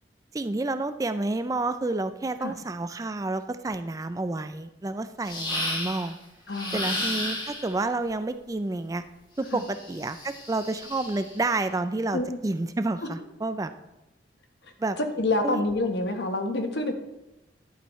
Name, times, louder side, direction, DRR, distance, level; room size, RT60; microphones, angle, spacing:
voice 1, 0.3-6.2 6.7-9.0 9.4-13.7 14.8-15.0 15.4-15.6, right 2 dB, 20° right, 10 dB, 0.3 m, -29 dB
sound 1, 5.3-6.1 6.5-7.8 9.5-11.4, left 1 dB, 25° left, 1.5 m, -33 dB
voice 2, 6.5-6.9 9.5-9.6 12.1-12.4 14.6-16.9, left 2 dB, 70° left, 5 dB, 1.2 m, -28 dB
11.0 x 8.9 x 3.1 m, 0.99 s
head